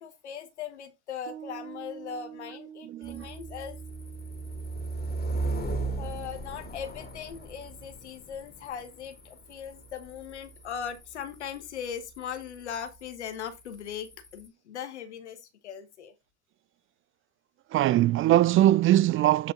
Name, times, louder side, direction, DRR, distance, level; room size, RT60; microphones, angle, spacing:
voice 1, 0.0-3.8 6.0-16.1, left 8 dB, 90° left, 1.4 m, -39 dB
Piano, 1.3-8.0, right 9 dB, 55° right, 3.0 m, -48 dB
voice 2, 2.9-3.3 17.7-19.5, right 14 dB, 40° right, 0.4 m, -21 dB
sound 1, 3.0-14.5, right 3 dB, 30° left, 2.7 m, -37 dB
8.3 x 5.2 x 3.7 m
hypercardioid pair, 65°, 33 cm